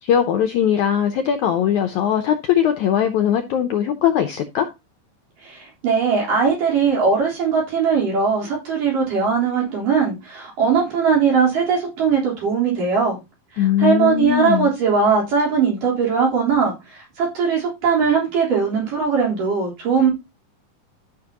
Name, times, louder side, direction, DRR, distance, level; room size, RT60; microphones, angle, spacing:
voice 1, 0.0-4.7 13.6-14.7, left 9 dB, 90° left, 7 dB, 1.7 m, -20 dB
voice 2, 5.4-13.2 13.6-20.1, right 5 dB, 60° right, -3 dB, 5.3 m, -20 dB
13.5 x 6.0 x 2.9 m, 0.24 s
omnidirectional pair, 4.4 m